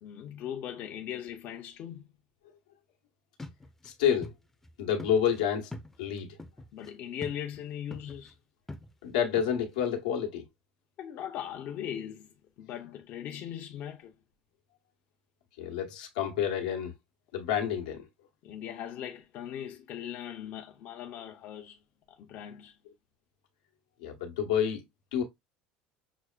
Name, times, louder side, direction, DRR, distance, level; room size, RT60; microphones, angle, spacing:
voice 1, 0.0-2.0 6.7-8.3 11.0-14.1 18.4-21.8 22.1-22.8, left 10 dB, 55° left, 0.6 m, -39 dB
sound 1, 3.4-3.9 4.2-4.3 4.6-4.7 5.0-6.9 7.2-7.6 7.9-8.3 8.7-9.9, left 2 dB, 10° left, 0.6 m, -44 dB
voice 2, 3.8-4.3 4.8-5.7 6.0-6.3 9.0-10.4 15.6-16.9 17.3-18.1 24.0-24.8 25.1-25.2, left 8 dB, 90° left, 1.0 m, -29 dB
6.0 x 2.1 x 2.3 m
supercardioid pair, 90°, 4 cm